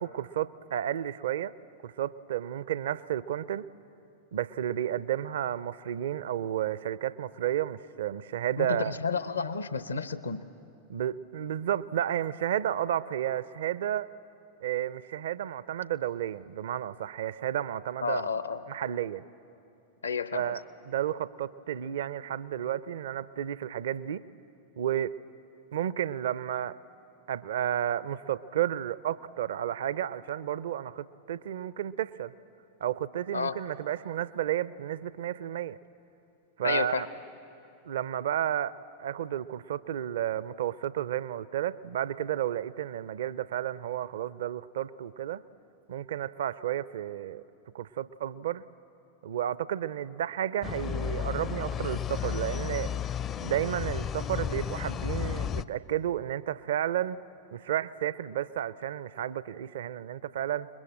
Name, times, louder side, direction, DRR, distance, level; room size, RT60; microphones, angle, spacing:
voice 1, 0.0-1.5 1.8-3.6 4.3-9.0 10.9-14.1 14.6-18.4 18.7-19.2 20.3-24.2 24.8-25.1 25.7-26.8 27.3-32.3 32.8-35.8 36.6-37.1 37.9-38.7 39.0-45.4 45.9-47.4 47.7-48.6 49.2-52.9 53.4-57.2 57.5-60.7, right 11 dB, 60° right, 18 dB, 0.5 m, -32 dB
voice 2, 8.6-10.4 18.0-18.6 20.0-20.5 33.3-33.6 36.6-37.1, left 5 dB, 75° left, 13 dB, 0.8 m, -31 dB
sound 1, 50.6-55.6, left 8 dB, 30° left, 0.5 m, -33 dB
29.0 x 21.5 x 7.7 m, 2.8 s
figure-of-eight pair, 90°, 0 cm